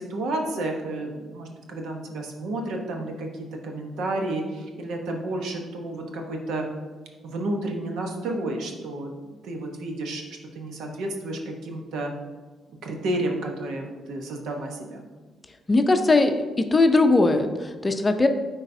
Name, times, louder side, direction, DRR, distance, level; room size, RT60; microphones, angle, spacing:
voice 1, 0.0-6.7 7.2-9.1 9.4-12.1 12.8-15.1, right 2 dB, 80° right, 2 dB, 1.0 m, -31 dB
voice 2, 15.7-18.3, left 2 dB, 25° left, 7 dB, 0.6 m, -20 dB
10.0 x 4.1 x 2.7 m, 1.3 s
cardioid pair, 90°, 0 cm